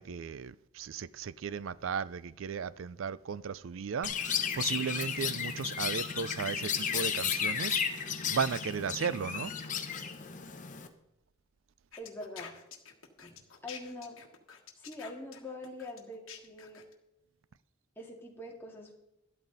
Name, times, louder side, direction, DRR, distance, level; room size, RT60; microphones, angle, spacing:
voice 1, 0.0-7.8 8.3-9.5, right 6 dB, 65° right, 0.4 m, -35 dB
Chirp tweet, 4.0-10.9, left 7 dB, 35° left, 1.0 m, -33 dB
sound 1, 11.9-16.9, left 7 dB, 65° left, 1.4 m, -48 dB
voice 2, 12.0-12.5 13.2-14.2 14.8-16.8 18.0-18.9, left 1 dB, 10° left, 2.2 m, -44 dB
13.0 x 12.5 x 4.0 m
head